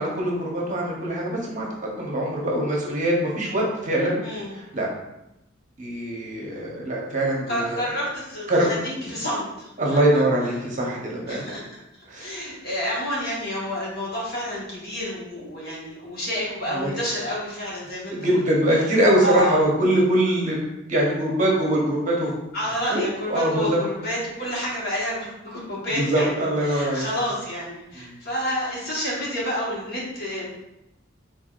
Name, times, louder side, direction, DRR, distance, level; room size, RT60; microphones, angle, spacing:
voice 1, 0.0-4.2 4.5-4.9 5.8-7.8 8.5-9.0 9.8-11.4 12.1-12.4 16.7-16.9 18.1-20.6 20.8-22.3 22.9-23.0 23.3-23.7 26.0-27.0 28.0-28.1, right 1 dB, 40° right, -2 dB, 1.0 m, -23 dB
voice 2, 4.2-4.5 6.4-6.6 7.5-9.7 10.1-10.2 11.3-11.8 12.2-18.4 18.8-18.9 19.2-19.6 22.5-30.5, equal, 55° left, -5 dB, 1.5 m, -29 dB
4.7 x 3.9 x 2.5 m, 0.87 s
head